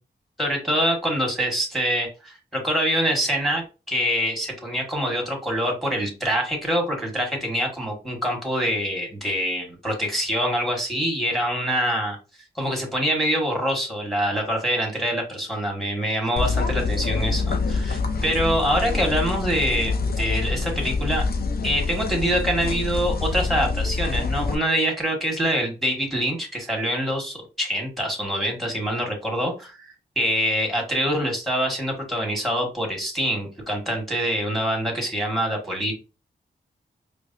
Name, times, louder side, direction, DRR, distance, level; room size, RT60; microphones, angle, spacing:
voice 1, 0.4-12.2 12.5-21.3 21.6-35.9, equal, ahead, 1 dB, 1.5 m, -25 dB
sound 1, 16.4-24.5, left 4 dB, 55° left, 0.6 m, -26 dB
4.5 x 2.2 x 2.7 m, 0.31 s
cardioid pair, 75°, 18 cm